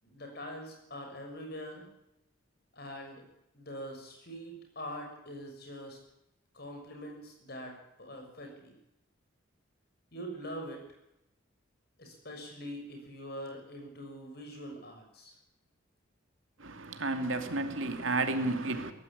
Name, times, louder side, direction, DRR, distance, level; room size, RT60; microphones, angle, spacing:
voice 1, 0.0-1.9 2.7-3.2 3.5-6.0 6.5-8.7 10.1-10.8 12.0-15.3, equal, 50° left, 6.4 m, -43 dB
voice 2, 16.6-18.9, right 2 dB, 75° right, 2.5 m, -32 dB
18.0 x 15.5 x 10.0 m
head